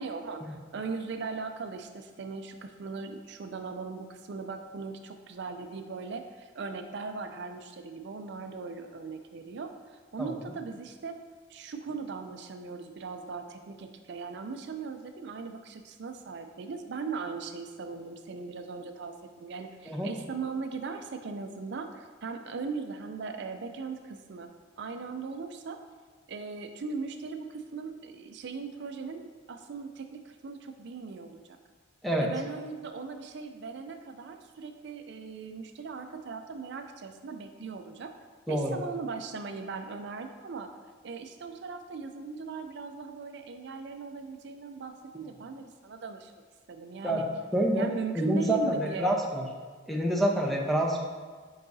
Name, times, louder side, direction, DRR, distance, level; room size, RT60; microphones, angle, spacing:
voice 1, 0.0-11.2 11.5-24.5 24.8-25.8 26.3-31.6 32.2-38.1 38.5-40.8 41.0-46.3 46.7-47.3 47.8-49.2, right 4 dB, 60° right, 6 dB, 0.4 m, -39 dB
voice 2, 47.5-47.9 48.1-49.4 49.9-51.0, right 1 dB, ahead, -1 dB, 0.7 m, -27 dB
10.0 x 4.7 x 2.7 m, 1.5 s
head